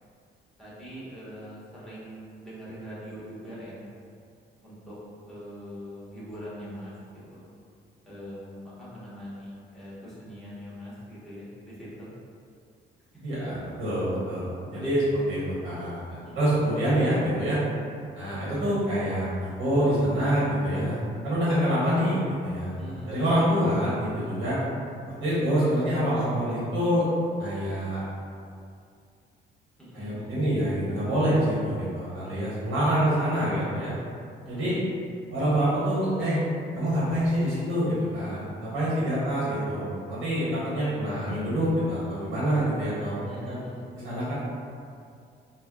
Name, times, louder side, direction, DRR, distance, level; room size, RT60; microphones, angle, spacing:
voice 1, 0.6-3.8 4.6-5.0 5.3-7.4 8.0-12.1 13.1-13.6 14.7-14.9 16.2-16.6 22.8-23.1 29.8-30.2 34.4-34.9 43.3-43.9, equal, ahead, -9 dB, 1.0 m, -42 dB
voice 2, 13.2-17.6 18.1-21.0 21.2-24.6 25.2-27.0 27.4-28.0 29.9-33.9 34.4-34.7 35.3-36.4 36.7-43.6 44.0-44.3, equal, 70° right, -10 dB, 1.0 m, -26 dB
3.2 x 2.1 x 2.2 m, 2.4 s
cardioid pair, 90°, 20 cm